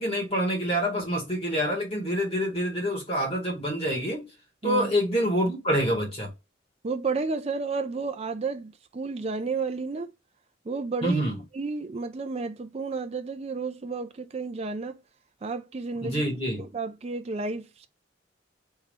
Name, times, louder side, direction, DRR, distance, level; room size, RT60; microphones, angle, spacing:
voice 1, 0.0-4.2 4.6-6.3 11.0-11.4 16.0-16.6, equal, 30° left, 1.8 m, -26 dB
voice 2, 6.8-10.1 10.7-11.2 11.5-15.0 15.4-16.2 16.6-17.9, right 4 dB, 30° right, 0.4 m, -31 dB
3.7 x 2.8 x 4.7 m
head